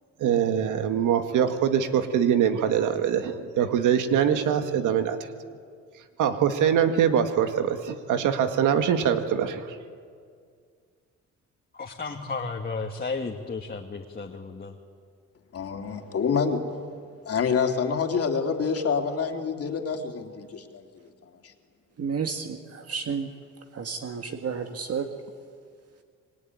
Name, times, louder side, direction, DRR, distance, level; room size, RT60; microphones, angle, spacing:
voice 1, 0.2-5.2 6.2-9.8, right 8 dB, 80° right, 7 dB, 1.8 m, -23 dB
voice 2, 11.7-14.8, left 4 dB, 30° left, 1 dB, 2.2 m, -33 dB
voice 3, 15.5-16.6 17.2-20.8, left 6 dB, 50° left, 4 dB, 3.1 m, -27 dB
voice 4, 22.0-23.3 23.7-25.1, right 6 dB, 55° right, 5 dB, 1.8 m, -31 dB
26.5 x 22.0 x 9.6 m, 2.1 s
cardioid pair, 90°, 30 cm